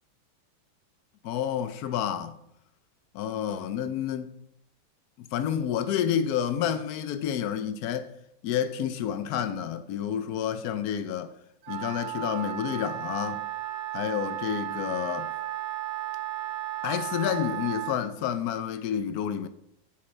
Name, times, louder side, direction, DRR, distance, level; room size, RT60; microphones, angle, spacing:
voice 1, 1.2-2.4 3.1-4.4 5.2-8.1 8.4-11.3 11.7-13.4 13.9-15.3 16.8-19.5, left 9 dB, 80° left, 0.8 m, -29 dB
Wind instrument woodwind instrument, 11.6-18.0, right 13 dB, 65° right, 1.2 m, -34 dB
7.0 x 4.9 x 4.5 m
omnidirectional pair, 2.2 m